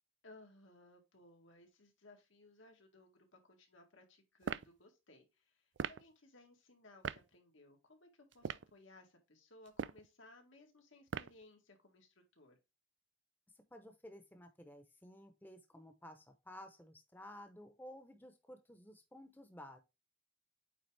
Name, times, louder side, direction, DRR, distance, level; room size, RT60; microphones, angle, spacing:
voice 1, 0.2-12.6, left 2 dB, 80° left, 2.0 m, -62 dB
sound 1, 4.4-4.7 5.8-6.0 7.0-7.2 8.3-8.7 9.7-10.1 11.1-11.4, right 7 dB, 65° right, 0.4 m, -40 dB
voice 2, 13.7-19.8, left 1 dB, 10° left, 0.8 m, -54 dB
8.8 x 3.6 x 3.3 m
head